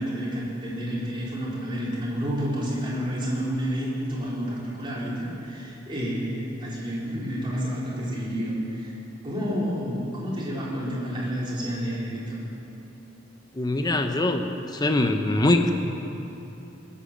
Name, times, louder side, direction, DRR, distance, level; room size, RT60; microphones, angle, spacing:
voice 1, 0.0-8.9 9.2-12.4, equal, 25° right, -7 dB, 4.1 m, -30 dB
voice 2, 13.5-14.4 14.7-15.7, left 1 dB, 20° left, 6 dB, 0.9 m, -22 dB
20.0 x 8.7 x 7.6 m, 2.9 s
head